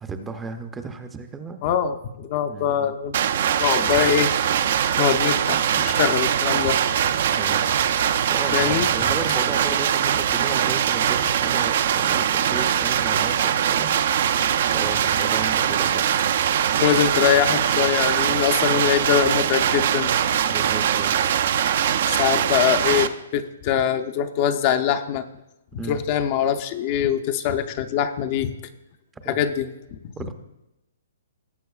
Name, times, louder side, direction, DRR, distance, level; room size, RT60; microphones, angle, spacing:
voice 1, 0.0-1.6 2.5-2.9 7.4-7.8 8.3-14.0 14.7-16.1 20.5-21.2 25.8-26.0 29.2-29.4 30.2-30.3, right 4 dB, 10° right, 7 dB, 0.6 m, -34 dB
voice 2, 1.6-3.2 3.6-4.3 5.0-6.8 8.5-8.9 16.8-20.1 22.1-25.2 25.9-28.5 29.3-29.7, left 9 dB, 35° left, 8 dB, 0.5 m, -23 dB
sound 1, 3.1-23.1, right 9 dB, 55° right, 0.5 m, -22 dB
19.0 x 7.7 x 2.4 m, 0.91 s
hypercardioid pair, 155°, 0 cm